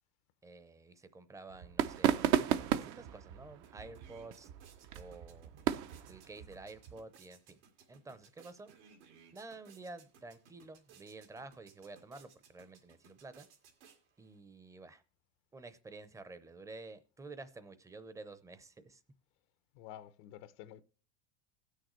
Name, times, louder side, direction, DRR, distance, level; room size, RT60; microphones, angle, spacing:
voice 1, 0.4-4.5 4.9-5.5 6.0-7.6 7.9-8.7 9.3-13.5 14.2-15.0 15.5-19.0, right 3 dB, 10° right, 0.6 m, -51 dB
sound 1, 1.5-7.0, right 11 dB, 55° right, 0.7 m, -34 dB
sound 2, 3.2-3.3 3.5-14.4, right 6 dB, 85° right, 2.2 m, -62 dB
voice 2, 19.7-20.8, left 12 dB, 70° left, 0.8 m, -50 dB
18.5 x 6.5 x 3.1 m
supercardioid pair, 130°, 34 cm